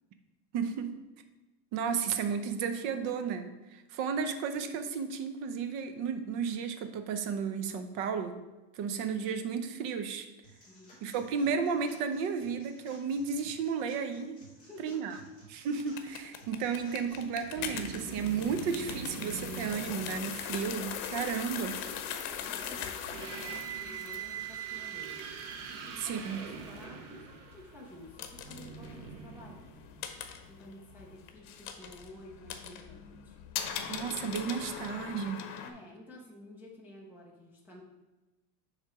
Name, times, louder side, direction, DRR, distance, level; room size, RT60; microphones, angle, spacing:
voice 1, 0.5-1.0 1.7-8.3 8.7-10.3 11.0-14.4 14.8-15.2 15.5-21.8 26.0-26.4 33.9-35.4, right 6 dB, 45° right, 8 dB, 0.6 m, -33 dB
sound 1, 10.4-18.4, right 1 dB, 15° left, 2.3 m, -57 dB
voice 2, 14.5-15.1 22.3-29.6 30.5-33.4 35.6-37.8, left 1 dB, 5° right, -5 dB, 0.4 m, -51 dB
sound 2, 15.8-35.7, left 8 dB, 75° left, 0.8 m, -41 dB
sound 3, 17.6-20.8 22.9-30.2, right 6 dB, 90° right, 1.0 m, -43 dB
7.4 x 3.3 x 4.8 m, 1.1 s
cardioid pair, 170°, 43 cm